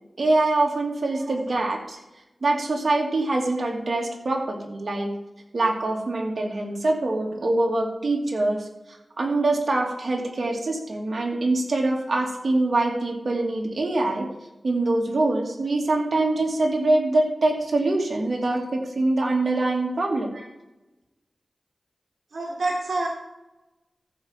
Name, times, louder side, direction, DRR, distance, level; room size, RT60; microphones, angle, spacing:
voice 1, 0.2-2.0 2.4-5.1 5.5-8.6 9.2-14.3 14.6-20.3, right 2 dB, 65° right, 0 dB, 2.4 m, -24 dB
voice 2, 22.3-23.1, right 2 dB, 80° right, -1 dB, 2.0 m, -27 dB
14.0 x 5.1 x 7.3 m, 0.97 s
cardioid pair, 50°, 0 cm